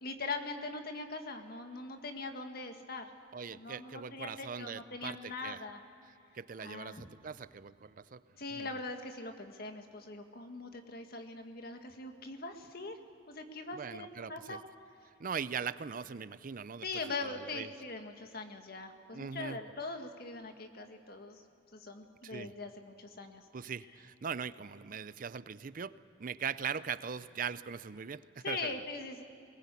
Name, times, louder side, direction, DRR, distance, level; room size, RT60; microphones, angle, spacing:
voice 1, 0.0-3.1 3.5-5.8 6.6-7.1 8.3-13.0 13.3-14.6 16.8-21.4 21.7-23.4 28.4-29.2, left 3 dB, 55° left, 5 dB, 1.9 m, -42 dB
voice 2, 3.3-5.6 6.3-8.2 8.5-8.7 13.7-14.6 15.2-16.9 17.2-17.7 19.1-19.6 22.2-22.5 23.5-28.7, right 6 dB, 50° right, 15 dB, 0.5 m, -40 dB
21.5 x 19.5 x 8.4 m, 2.7 s
head